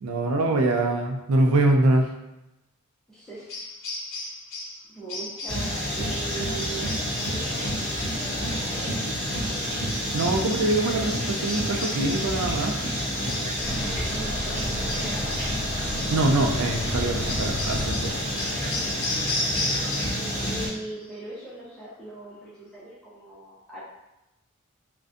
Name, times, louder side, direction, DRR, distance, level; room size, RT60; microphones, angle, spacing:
voice 1, 0.0-2.1 10.1-12.7 16.1-18.1, right 2 dB, 85° right, 3 dB, 0.4 m, -23 dB
voice 2, 3.1-3.5 4.9-9.1 13.7-15.4 19.4-23.8, right 2 dB, 5° left, -10 dB, 0.5 m, -40 dB
sound 1, 3.5-4.8 5.1-5.7 6.6-7.4 9.9-10.7 11.5-12.4 13.3-13.9 14.5-15.6 16.0-16.2 17.3-20.3 20.6-21.1, left 2 dB, 60° left, 0.6 m, -34 dB
sound 2, 5.5-20.7, equal, 20° left, 1.4 m, -29 dB
sound 3, 13.6-18.7, left 1 dB, 20° right, 1.3 m, -34 dB
2.5 x 2.2 x 2.4 m, 0.93 s
head